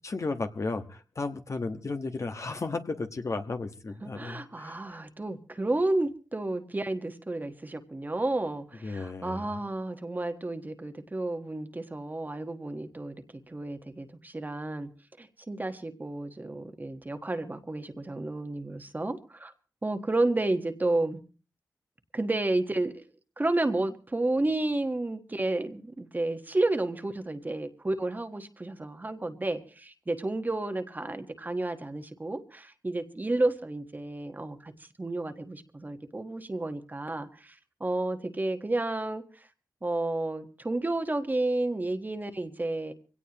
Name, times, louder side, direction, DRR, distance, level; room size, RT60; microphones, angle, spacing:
voice 1, 0.0-4.8 8.8-9.5, left 3 dB, 45° left, 7 dB, 1.4 m, -34 dB
voice 2, 4.0-13.2 13.5-14.9 15.2-19.5 19.8-21.2 22.1-23.0 23.4-34.7 35.0-39.5 39.8-42.9, right 2 dB, 25° right, 7 dB, 1.4 m, -31 dB
23.5 x 17.5 x 3.0 m, 0.36 s
wide cardioid pair, 85°, 7 cm